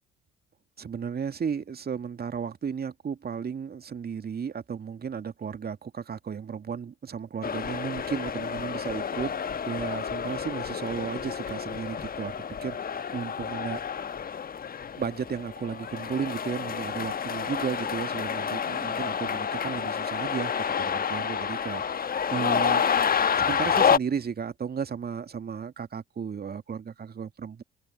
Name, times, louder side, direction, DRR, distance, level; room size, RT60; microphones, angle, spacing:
voice 1, 0.8-12.3 12.6-13.8 15.0-22.8 23.4-27.6, right 6 dB, 30° right, 2.3 m, -34 dB
sound 1, 7.4-24.0, left 7 dB, 30° left, 1.4 m, -29 dB
figure-of-eight pair, 55°, 32 cm